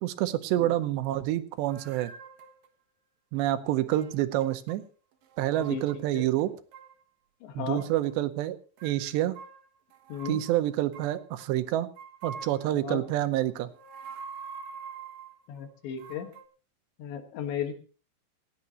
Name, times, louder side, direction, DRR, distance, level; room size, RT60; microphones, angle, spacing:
voice 1, 0.0-2.1 3.3-4.8 5.4-6.5 7.6-9.4 10.3-11.9 12.2-13.7, right 14 dB, 80° right, 10 dB, 3.0 m, -28 dB
sound 1, 1.6-2.7 3.9-4.8 5.1-6.1 6.4-7.0 7.8-8.2 8.8-11.5 12.0-12.8 13.6-15.4 16.0-16.5, right 6 dB, 60° right, 2.9 m, -45 dB
voice 2, 7.4-7.8 10.1-10.4 12.8-13.0 15.5-16.3 17.0-17.7, left 8 dB, 85° left, 6 dB, 3.9 m, -35 dB
28.0 x 9.6 x 3.0 m, 0.37 s
omnidirectional pair, 5.0 m